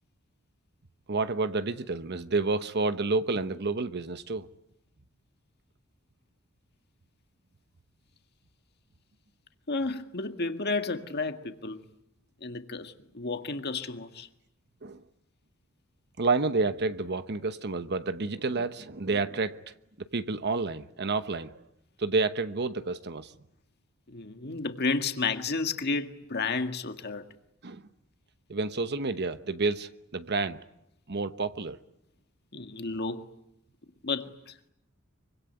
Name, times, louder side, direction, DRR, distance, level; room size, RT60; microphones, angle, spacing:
voice 1, 1.1-4.5 14.8-15.0 16.2-19.6 20.0-21.6 22.0-23.3 27.6-27.8 28.5-30.6 31.1-31.8, right 3 dB, 55° right, 1.0 m, -29 dB
voice 2, 9.7-11.8 12.4-14.3 24.1-27.2 32.5-33.2 34.0-34.7, left 3 dB, 50° left, 1.8 m, -32 dB
25.0 x 24.5 x 9.4 m
head